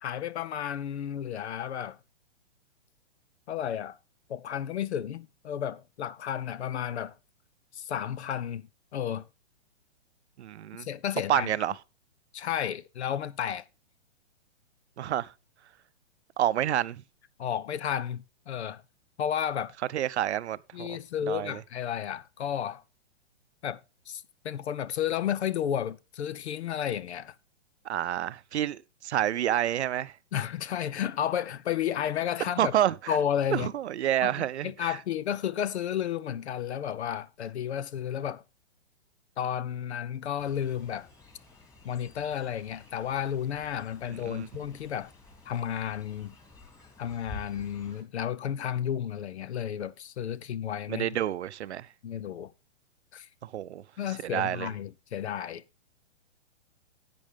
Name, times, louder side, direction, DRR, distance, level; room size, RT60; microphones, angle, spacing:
voice 1, 0.0-2.0 3.5-4.0 4.3-7.1 7.7-9.3 10.8-11.5 12.3-13.6 17.4-18.8 19.2-19.7 20.7-22.8 23.6-23.8 24.1-27.3 30.3-32.7 33.1-33.7 34.2-38.4 39.4-41.1 41.8-45.1 45.4-46.3 47.0-51.1 52.0-52.5 53.1-53.3 54.0-55.6, left 9 dB, 65° left, 0.9 m, -32 dB
voice 2, 10.4-10.9 11.3-11.7 15.0-15.3 16.4-17.0 19.9-21.0 21.3-21.6 27.8-30.1 32.6-33.2 33.5-35.0 44.2-44.5 50.9-51.9 53.4-53.8 54.2-54.7, right 11 dB, 65° right, 0.7 m, -29 dB
Fowl, 40.4-48.0, left 2 dB, 10° left, 2.8 m, -51 dB
10.5 x 8.7 x 3.5 m
hypercardioid pair, 140°, 35 cm